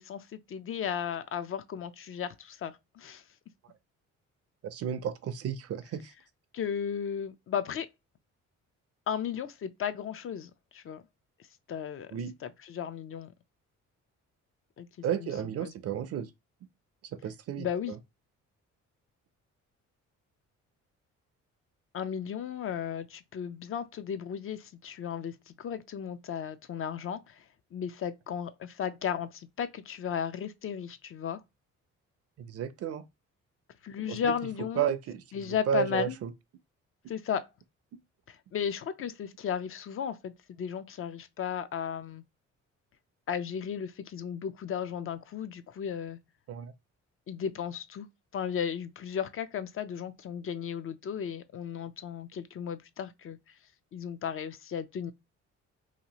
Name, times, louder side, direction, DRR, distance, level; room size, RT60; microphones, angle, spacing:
voice 1, 0.0-3.2 6.5-7.9 9.1-11.0 11.7-12.1 12.4-13.3 14.8-14.9 15.2-15.3 15.6-15.7 17.6-17.9 21.9-27.4 27.7-31.4 33.8-34.9 35.3-36.2 37.1-37.4 38.3-42.2 43.3-46.2 47.3-48.1 48.3-53.4 53.9-55.1, left 8 dB, 45° left, 0.4 m, -35 dB
voice 2, 4.6-6.1 12.1-12.3 15.0-16.3 17.1-18.0 32.4-33.0 34.1-34.3 34.8-36.3 46.5-46.7, right 9 dB, 55° right, 0.5 m, -33 dB
2.8 x 2.3 x 2.8 m
cardioid pair, 90°, 30 cm